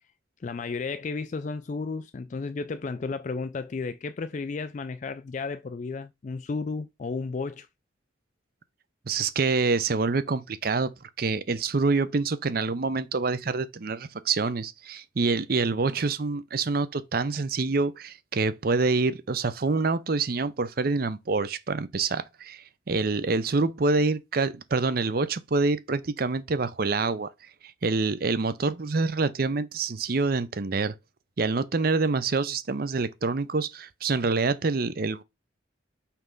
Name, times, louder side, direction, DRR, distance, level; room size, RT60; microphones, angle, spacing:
voice 1, 0.4-7.7, left 4 dB, 40° left, 0.3 m, -33 dB
voice 2, 9.1-10.9 11.2-27.3 27.8-30.9 31.4-35.2, right 3 dB, 50° right, 0.6 m, -26 dB
5.7 x 3.2 x 5.3 m
head